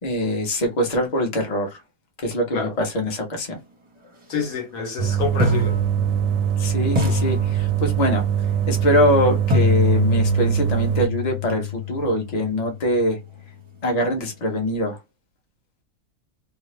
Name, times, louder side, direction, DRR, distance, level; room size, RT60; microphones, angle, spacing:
voice 1, 0.0-1.8 2.2-3.6 6.6-8.3 8.7-13.2 13.8-15.0, equal, 30° left, 0.9 m, -23 dB
voice 2, 4.3-5.8, left 4 dB, 65° left, 1.3 m, -26 dB
sound 1, 4.3-4.4 5.4-6.6 6.9-8.2 9.5-13.4, left 7 dB, 25° right, 0.8 m, -26 dB
sound 2, 5.0-11.1, right 10 dB, 65° right, 0.8 m, -22 dB
2.8 x 2.4 x 3.1 m
omnidirectional pair, 1.6 m